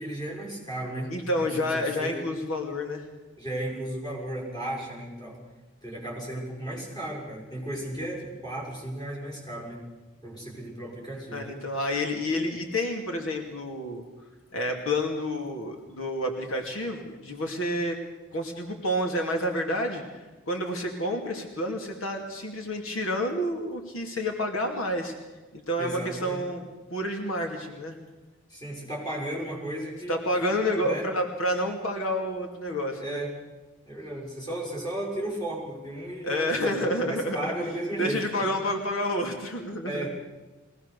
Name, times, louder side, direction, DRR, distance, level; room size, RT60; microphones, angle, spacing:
voice 1, 0.0-2.2 3.4-5.4 5.8-9.8 10.2-11.5 25.8-26.4 28.5-30.2 30.8-31.1 33.0-33.3 33.9-38.4 39.8-40.1, right 1 dB, 20° left, -4 dB, 6.5 m, -35 dB
voice 2, 1.1-3.1 11.3-14.0 14.5-18.0 18.3-25.1 25.5-28.0 30.1-33.2 36.2-37.7 38.0-40.1, left 1 dB, 85° left, 3 dB, 2.5 m, -29 dB
22.0 x 18.5 x 6.8 m, 1.2 s
head